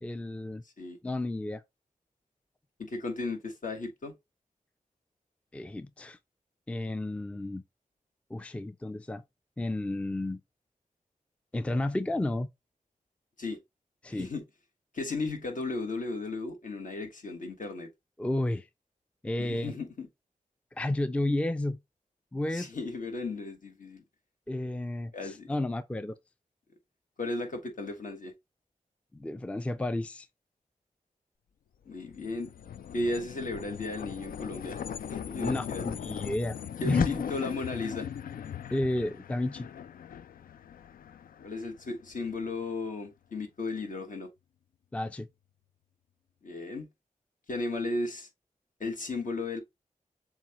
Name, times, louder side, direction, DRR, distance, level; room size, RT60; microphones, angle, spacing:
voice 1, 0.0-0.6 1.0-1.6 5.5-6.2 6.7-7.6 8.3-9.2 9.6-10.4 11.5-12.5 14.0-14.3 18.2-18.7 19.2-19.7 20.8-21.8 22.3-22.7 24.5-26.2 29.1-30.3 35.4-36.6 36.9-37.2 38.7-39.7 44.9-45.3, left 1 dB, 10° left, 0.4 m, -32 dB
voice 2, 2.8-4.1 13.4-13.6 14.1-14.4 14.9-17.9 19.4-20.1 22.5-24.0 25.1-25.5 27.2-28.3 31.8-32.5 32.9-34.8 35.1-35.8 36.8-38.1 41.4-44.3 46.4-46.9 47.5-48.3 48.8-49.6, left 3 dB, 65° left, 1.4 m, -35 dB
sound 1, 31.9-42.5, left 8 dB, 80° left, 0.4 m, -38 dB
7.2 x 2.4 x 2.9 m
wide cardioid pair, 75°, 14 cm